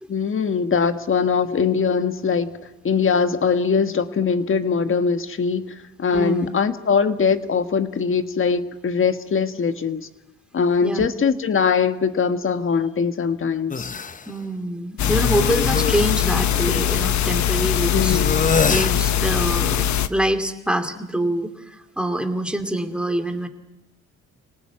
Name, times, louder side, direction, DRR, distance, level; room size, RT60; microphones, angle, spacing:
voice 1, 0.1-2.5 2.8-10.1 10.5-13.9 17.9-18.4, left 5 dB, 45° left, 9 dB, 1.6 m, -21 dB
voice 2, 6.1-6.5 10.8-11.1 14.3-18.2 18.7-23.5, right 1 dB, 5° right, 6 dB, 2.6 m, -25 dB
sound 1, 13.7-14.2 15.0-17.1 18.1-19.0, left 5 dB, 25° left, 0.9 m, -25 dB
sound 2, 15.0-20.1, left 10 dB, 70° left, 1.1 m, -21 dB
26.5 x 18.5 x 8.8 m, 0.95 s
cardioid pair, 90°, 30 cm